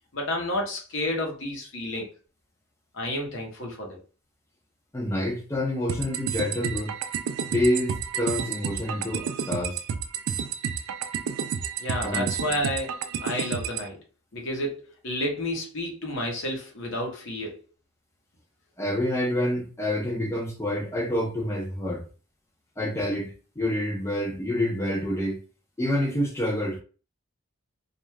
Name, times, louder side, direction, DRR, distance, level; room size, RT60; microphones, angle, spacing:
voice 1, 0.1-2.1 2.9-4.0 11.8-14.0 14.3-17.6, left 1 dB, 60° left, 0.9 m, -31 dB
voice 2, 4.9-6.9 7.5-9.8 12.0-12.3 18.8-22.0 22.8-25.4 25.8-26.8, left 1 dB, 10° left, 0.6 m, -27 dB
sound 1, 5.9-13.9, right 7 dB, 80° right, 0.3 m, -30 dB
2.4 x 2.2 x 3.2 m
head